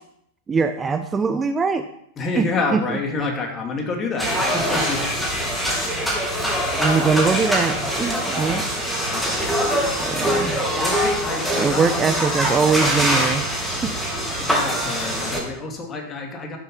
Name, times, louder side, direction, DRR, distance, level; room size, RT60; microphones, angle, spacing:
voice 1, 0.5-1.8 2.4-2.5 2.7-2.8 6.8-8.6 10.0-10.6 11.6-13.4 13.8-13.9, right 5 dB, 20° right, 8 dB, 0.8 m, -21 dB
voice 2, 2.2-5.3 9.1-9.9 10.2-10.5 10.7-12.2 12.5-13.0 14.4-16.6, left 3 dB, 25° left, 2 dB, 2.8 m, -29 dB
sound 1, 4.2-15.4, equal, ahead, 3.4 m, -23 dB
12.5 x 9.0 x 5.7 m, 0.74 s
figure-of-eight pair, 90°, 0 cm